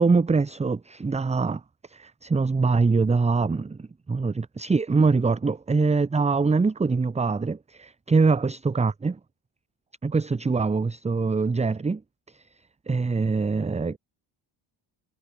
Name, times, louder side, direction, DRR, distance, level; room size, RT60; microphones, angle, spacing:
voice 1, 0.0-1.6 1.9-9.2 10.0-12.0 12.3-12.4 12.9-14.0, right 4 dB, 15° right, 0.9 m, -23 dB
cardioid pair, 140°, 46 cm